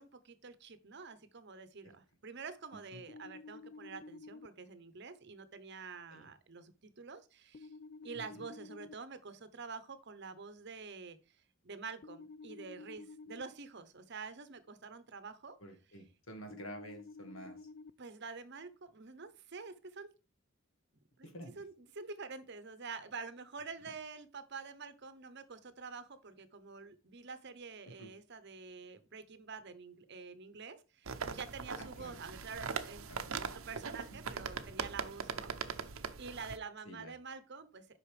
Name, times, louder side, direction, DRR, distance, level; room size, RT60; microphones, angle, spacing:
voice 1, 0.0-7.7 8.0-11.4 11.6-15.6 18.0-20.1 21.2-21.3 21.6-37.9, right 4 dB, 55° right, 11 dB, 0.9 m, -47 dB
sound 1, 3.1-4.5 7.5-8.9 12.0-13.4 16.5-17.9, left 3 dB, 45° left, 0.3 m, -51 dB
voice 2, 15.6-17.6 21.2-21.5 27.9-28.1 31.8-32.2 33.1-33.3 36.9-37.1, equal, 75° left, 5 dB, 2.0 m, -49 dB
sound 2, 31.1-36.6, right 5 dB, 85° right, 0.8 m, -41 dB
8.1 x 5.6 x 3.4 m, 0.32 s
head